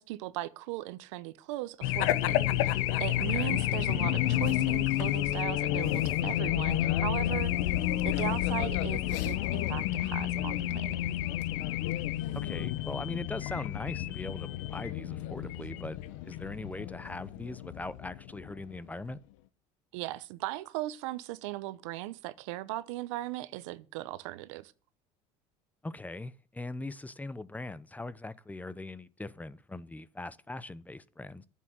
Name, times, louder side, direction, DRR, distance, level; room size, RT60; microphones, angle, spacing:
voice 1, 0.0-7.5 8.0-11.0 19.9-24.7, right 17 dB, 90° right, 0.8 m, -38 dB
Race car auto racing / Alarm, 1.8-18.8, left 14 dB, 90° left, 0.8 m, -30 dB
sound 1, 1.8-6.3, right 2 dB, 35° right, 2.5 m, -50 dB
sound 2, 7.8-10.0, left 9 dB, 55° left, 1.6 m, -45 dB
voice 2, 12.3-16.0 16.2-19.2 25.8-31.5, left 2 dB, 10° left, 0.7 m, -40 dB
11.0 x 7.4 x 7.7 m
supercardioid pair, 110°, 16 cm